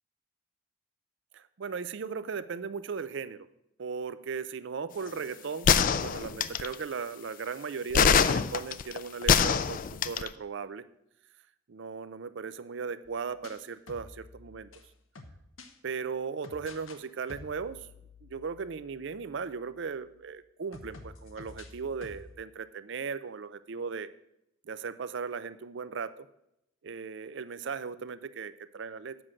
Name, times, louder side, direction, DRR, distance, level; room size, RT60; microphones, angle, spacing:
voice 1, 1.3-3.5 3.8-10.8 11.7-14.7 15.8-17.9 18.2-24.1 24.7-26.3 26.8-29.2, right 5 dB, 60° right, 14 dB, 0.5 m, -37 dB
sound 1, 5.7-6.7 7.9-10.3, left 7 dB, 45° left, 0.4 m, -23 dB
sound 2, 13.1-15.7 16.4-17.0 17.3-20.3 20.7-22.3, left 3 dB, 85° left, 1.0 m, -51 dB
7.8 x 6.1 x 6.3 m, 0.82 s
head